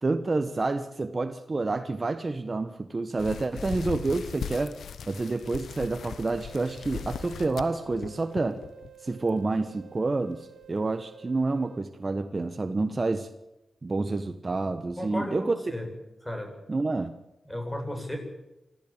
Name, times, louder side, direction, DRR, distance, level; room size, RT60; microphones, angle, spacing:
voice 1, 0.0-4.8 5.1-8.6 9.0-13.3 13.8-15.5 16.7-17.1, right 3 dB, 40° right, 7 dB, 1.3 m, -28 dB
sound 1, 3.2-8.9 9.3-9.5 10.1-10.2 10.6-10.7, left 7 dB, 90° left, 1.0 m, -39 dB
sound 2, 6.5-11.8, right 10 dB, 85° right, 1.3 m, -51 dB
voice 2, 15.0-15.9 16.2-16.6 17.4-18.2, equal, 15° left, 3 dB, 7.9 m, -34 dB
25.0 x 15.0 x 8.9 m, 0.96 s
cardioid pair, 50°, 0 cm